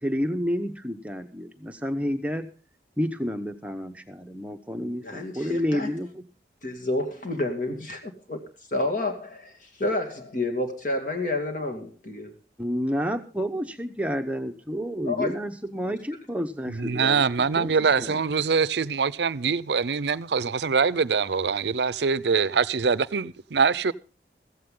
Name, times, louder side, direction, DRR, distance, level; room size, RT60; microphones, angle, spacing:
voice 1, 0.0-2.5 3.0-6.2 12.6-17.2 17.6-17.7 18.0-18.2, equal, 10° right, 0.9 m, -30 dB
voice 2, 4.8-5.9 6.6-8.4 8.7-12.3 15.0-15.3, left 2 dB, 50° left, 2.4 m, -29 dB
voice 3, 16.7-23.9, right 5 dB, 80° right, 0.6 m, -24 dB
15.5 x 15.0 x 3.8 m
head